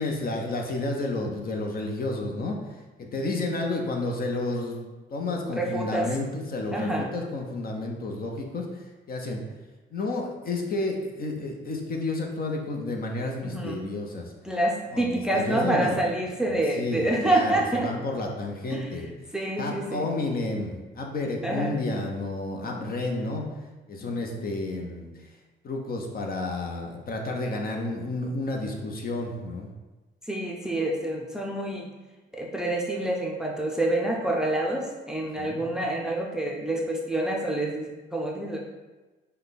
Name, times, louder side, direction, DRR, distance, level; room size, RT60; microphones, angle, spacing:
voice 1, 0.0-2.6 3.0-4.8 5.1-8.8 9.1-9.4 9.9-14.3 14.9-16.0 16.5-19.1 19.6-23.5 23.9-25.1 25.6-29.7 35.4-35.8, left 2 dB, 50° left, 1 dB, 0.8 m, -31 dB
voice 2, 5.5-6.1 6.7-7.1 13.4-13.9 14.4-17.9 18.7-18.9 19.3-20.1 21.4-21.8 22.6-23.0 24.0-24.1 30.3-31.9 32.3-38.6, right 1 dB, 5° right, -1 dB, 0.6 m, -27 dB
5.5 x 2.3 x 4.0 m, 1.2 s
cardioid pair, 90°, 20 cm